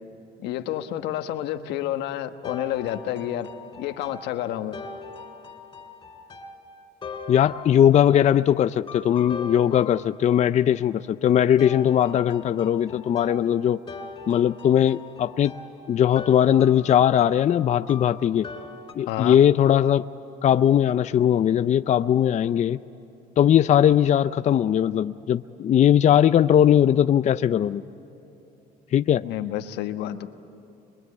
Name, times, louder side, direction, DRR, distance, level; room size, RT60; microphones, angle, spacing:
voice 1, 0.4-3.5 3.8-4.8 19.1-19.4 29.2-30.3, left 12 dB, 85° left, 8 dB, 1.2 m, -29 dB
sound 1, 2.4-8.2 8.9-10.5 11.6-18.9, left 4 dB, 25° left, 3.8 m, -41 dB
voice 2, 7.3-13.8 14.3-15.5 15.9-18.5 19.0-20.0 20.4-22.8 23.4-27.8 28.9-29.2, left 10 dB, 45° left, 12 dB, 0.5 m, -19 dB
25.0 x 22.5 x 9.6 m, 3.0 s
cardioid pair, 110°, 17 cm